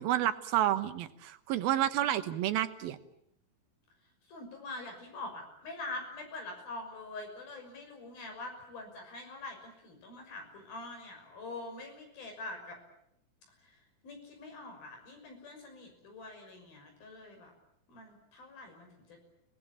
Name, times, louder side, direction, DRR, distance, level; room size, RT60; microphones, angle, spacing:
voice 1, 0.0-3.0, right 12 dB, 85° right, 11 dB, 3.1 m, -30 dB
voice 2, 2.0-2.3 4.3-12.8 13.6-13.8 14.0-17.5 17.9-19.2, left 2 dB, 85° left, 4 dB, 8.1 m, -45 dB
29.5 x 19.5 x 8.8 m, 0.77 s
omnidirectional pair, 4.1 m